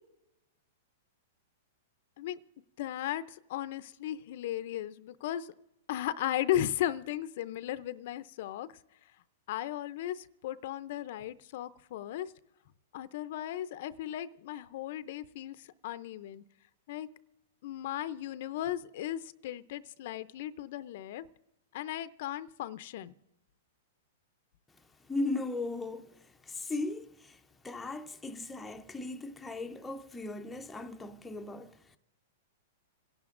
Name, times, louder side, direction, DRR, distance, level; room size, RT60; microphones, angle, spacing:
voice 1, 2.8-5.5 5.9-8.7 9.5-12.3 12.9-16.4 16.9-17.1 17.6-21.2 21.7-23.1, left 12 dB, 55° left, 0.5 m, -36 dB
voice 2, 25.1-32.0, left 2 dB, 10° left, 0.5 m, -38 dB
27.0 x 11.0 x 2.5 m
hypercardioid pair, 140°, 0 cm